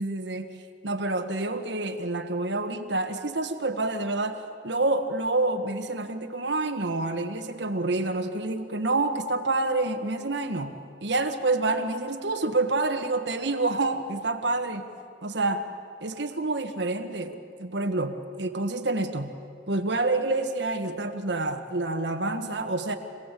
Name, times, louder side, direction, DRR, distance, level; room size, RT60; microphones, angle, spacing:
voice 1, 0.0-10.8 11.0-14.9 15.2-15.7 16.0-19.3 19.7-23.0, right 2 dB, 70° right, 5 dB, 1.6 m, -28 dB
26.0 x 17.5 x 8.4 m, 2.4 s
head